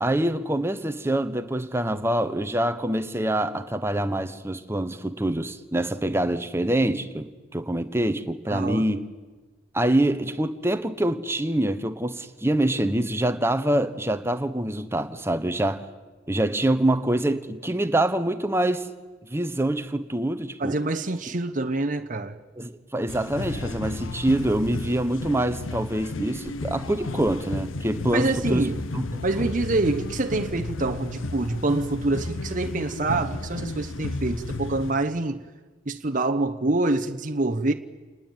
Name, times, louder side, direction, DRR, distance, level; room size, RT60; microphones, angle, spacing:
voice 1, 0.0-9.0 9.7-15.9 16.3-18.9 19.3-20.8 22.6-29.5, right 1 dB, 10° right, 1.1 m, -25 dB
voice 2, 8.5-8.9 20.6-22.4 28.1-28.8 29.2-35.4 35.9-37.7, right 2 dB, 40° right, 0.9 m, -26 dB
sound 1, 23.1-34.9, left 2 dB, 90° left, 0.9 m, -33 dB
28.5 x 20.0 x 9.1 m
head